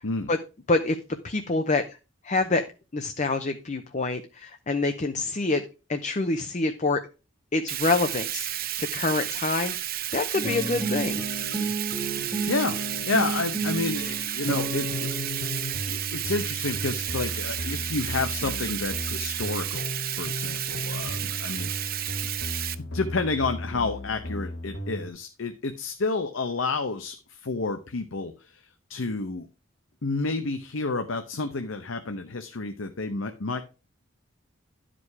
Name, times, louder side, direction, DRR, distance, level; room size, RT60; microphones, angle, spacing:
voice 1, 1.2-2.0 2.2-2.6 2.9-5.6 5.9-7.0 7.5-8.5 8.8-11.2, left 3 dB, 35° left, 7 dB, 0.7 m, -26 dB
Bathtub (filling or washing), 7.7-22.7, right 12 dB, 45° right, 0.6 m, -32 dB
sound 1, 10.3-15.8, right 2 dB, 15° right, 1.1 m, -32 dB
voice 2, 12.2-15.6 15.9-19.9 20.2-22.1 22.8-28.6 28.9-29.5 30.0-33.6, left 3 dB, 75° left, 7 dB, 0.8 m, -30 dB
sound 2, 14.4-25.1, left 1 dB, 55° left, 1.3 m, -36 dB
11.5 x 5.1 x 4.7 m, 0.31 s
head